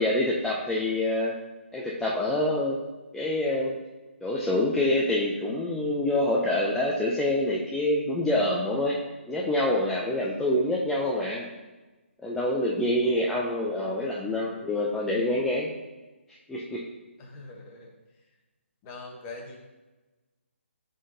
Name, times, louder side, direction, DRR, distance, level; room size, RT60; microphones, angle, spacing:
voice 1, 0.0-1.3 1.7-2.8 3.1-3.7 4.2-9.0 9.3-11.5 12.2-15.7 16.5-16.8, left 1 dB, 5° left, -5 dB, 0.3 m, -26 dB
voice 2, 17.2-18.0 18.8-19.6, left 3 dB, 20° left, 0 dB, 1.0 m, -42 dB
9.8 x 3.9 x 2.7 m, 1.2 s
hypercardioid pair, 155°, 7 cm